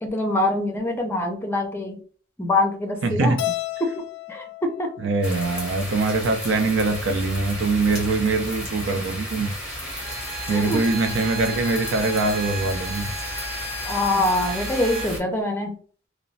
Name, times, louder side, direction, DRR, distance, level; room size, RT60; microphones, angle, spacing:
voice 1, 0.0-2.0 2.4-3.4 4.3-4.9 10.5-10.8 11.1-11.2 13.9-15.7, left 2 dB, 10° left, 0.5 m, -24 dB
voice 2, 3.0-3.4 5.0-9.5 10.5-13.1, right 3 dB, 65° right, 0.4 m, -23 dB
Keyboard (musical), 3.4-5.7, left 16 dB, 65° left, 0.4 m, -33 dB
sound 1, 5.2-15.2, equal, 5° right, 1.0 m, -33 dB
Bowed string instrument, 9.8-15.1, right 2 dB, 30° right, 1.0 m, -35 dB
3.0 x 2.1 x 2.6 m
head